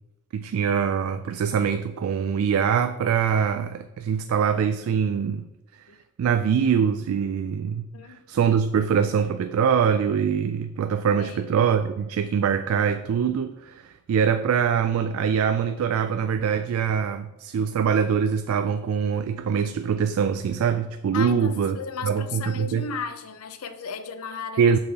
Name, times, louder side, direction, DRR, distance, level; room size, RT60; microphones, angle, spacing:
voice 1, 0.3-5.4 6.2-7.9 8.3-21.8 22.0-22.9 24.6-24.8, right 7 dB, 70° right, 9 dB, 0.3 m, -23 dB
voice 2, 11.2-11.5 21.1-24.7, left 5 dB, 85° left, 10 dB, 0.6 m, -35 dB
6.5 x 5.6 x 2.8 m, 1.0 s
head